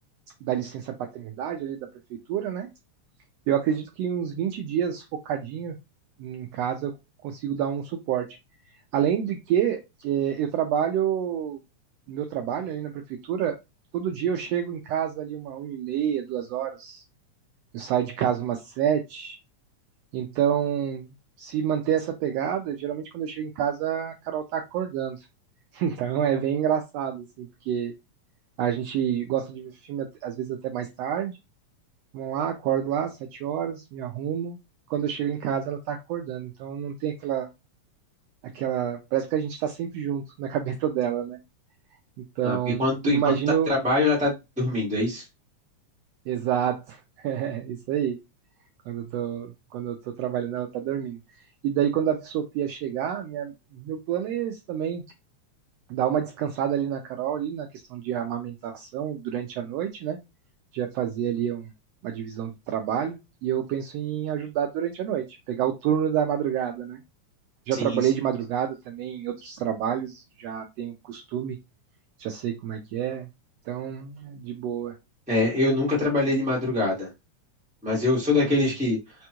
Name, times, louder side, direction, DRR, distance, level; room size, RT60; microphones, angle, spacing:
voice 1, 0.4-2.7 3.5-5.8 6.2-7.0 7.2-8.3 8.9-11.6 12.1-13.6 13.9-17.0 17.7-19.4 20.1-21.1 21.4-25.2 25.7-27.9 28.6-31.4 32.1-34.6 34.9-37.5 38.5-41.4 42.2-43.8 46.3-48.2 48.9-51.2 51.6-55.0 55.9-60.2 60.7-61.7 62.0-67.0 67.7-71.6 72.2-73.3 73.7-75.0, right 9 dB, 85° right, 4 dB, 1.4 m, -28 dB
voice 2, 42.4-43.2 43.7-45.2 67.8-67.9 75.3-77.1 77.8-79.0, left 2 dB, 5° right, -5 dB, 0.5 m, -24 dB
5.1 x 2.3 x 2.9 m, 0.23 s
omnidirectional pair, 3.4 m